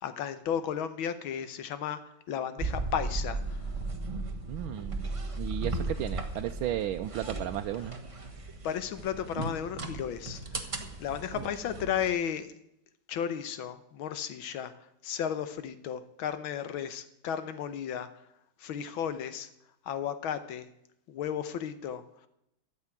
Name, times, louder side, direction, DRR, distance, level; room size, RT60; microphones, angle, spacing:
voice 1, 0.0-2.0 2.3-3.7 8.6-10.7 11.0-12.5 13.1-14.7 15.0-18.1 18.6-19.5 19.8-20.7 21.1-22.0, left 8 dB, 80° left, 12 dB, 1.6 m, -34 dB
sound 1, 2.6-12.2, right 2 dB, 20° right, 0.9 m, -36 dB
voice 2, 4.5-5.1 5.4-8.0 11.3-11.5, right 12 dB, 75° right, 5 dB, 1.4 m, -34 dB
13.5 x 7.2 x 8.9 m, 0.80 s
omnidirectional pair, 2.3 m